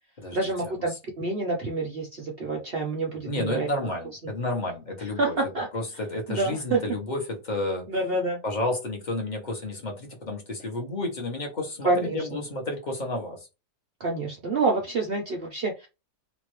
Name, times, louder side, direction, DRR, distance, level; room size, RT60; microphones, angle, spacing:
voice 1, 0.3-3.7 5.2-5.7 6.3-6.8 7.9-8.4 11.8-12.4 14.0-15.9, right 3 dB, 60° right, 0.6 m, -27 dB
voice 2, 3.2-5.4 5.7-7.9 8.4-13.5, left 2 dB, 35° left, 1.0 m, -31 dB
3.1 x 2.5 x 3.0 m
omnidirectional pair, 1.7 m